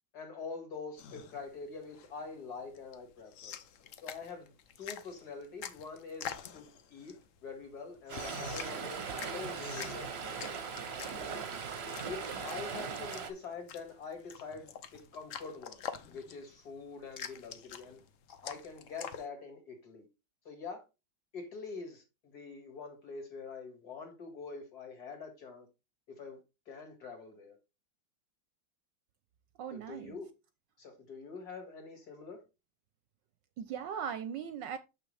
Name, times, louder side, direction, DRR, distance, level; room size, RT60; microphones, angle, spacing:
voice 1, 0.1-3.6 4.0-10.4 11.1-11.3 12.0-15.8 16.1-18.0 18.4-20.1 20.4-20.8 21.3-25.7 26.1-27.6 29.7-30.3 30.8-32.4, left 4 dB, 50° left, 2.4 m, -45 dB
sound 1, 1.0-19.2, left 8 dB, 85° left, 0.6 m, -47 dB
Stream, 8.1-13.3, right 6 dB, 50° right, 0.8 m, -39 dB
voice 2, 29.6-30.2 33.6-34.8, right 8 dB, 75° right, 1.1 m, -39 dB
6.9 x 6.2 x 3.2 m
omnidirectional pair, 2.3 m